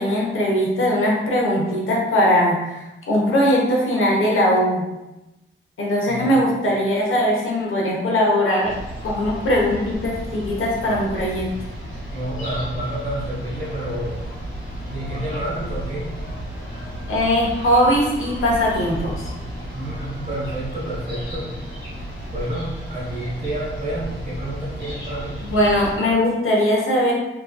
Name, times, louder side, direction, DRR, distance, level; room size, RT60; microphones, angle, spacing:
voice 1, 0.0-4.8 5.8-8.7 9.0-11.5 17.1-19.3 25.5-27.1, equal, 85° left, -3 dB, 0.9 m, -20 dB
voice 2, 6.1-6.4 12.1-14.2 14.9-16.1 19.7-21.6 22.3-25.4, right 1 dB, 35° right, -6 dB, 1.3 m, -29 dB
sound 1, 8.6-26.0, equal, 70° left, 1.4 m, -33 dB
3.5 x 3.1 x 2.3 m, 0.98 s
wide cardioid pair, 145°, 21 cm